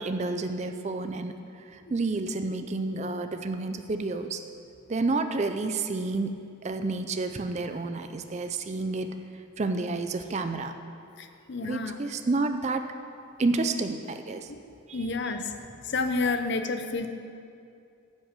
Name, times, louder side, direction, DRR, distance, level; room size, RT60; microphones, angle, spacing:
voice 1, 0.0-1.3 1.9-4.4 4.9-6.3 6.6-9.1 9.6-10.7 11.6-12.8 13.4-14.5 14.9-15.0, right 3 dB, 30° right, 8 dB, 0.4 m, -29 dB
voice 2, 11.2-12.0 14.5-14.6 14.9-15.5 15.9-17.1, left 3 dB, 55° left, 8 dB, 0.6 m, -29 dB
10.0 x 5.9 x 6.6 m, 2.5 s
head